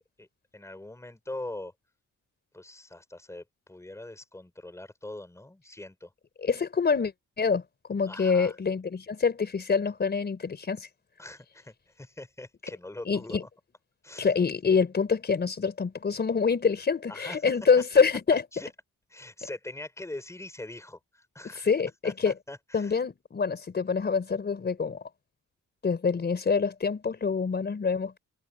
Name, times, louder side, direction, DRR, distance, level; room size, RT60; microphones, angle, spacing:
voice 1, 0.5-1.7 2.5-6.1 8.1-8.6 11.2-13.5 14.0-14.3 17.1-17.5 18.5-18.7 19.1-21.7 22.0-23.0, left 2 dB, 10° left, 5.5 m, -42 dB
voice 2, 6.4-7.1 7.4-7.6 7.9-10.9 13.1-13.4 14.2-18.4 21.5-22.3 22.7-25.0 25.8-28.2, left 5 dB, 30° left, 4.3 m, -26 dB
wide cardioid pair, 155°, 32 cm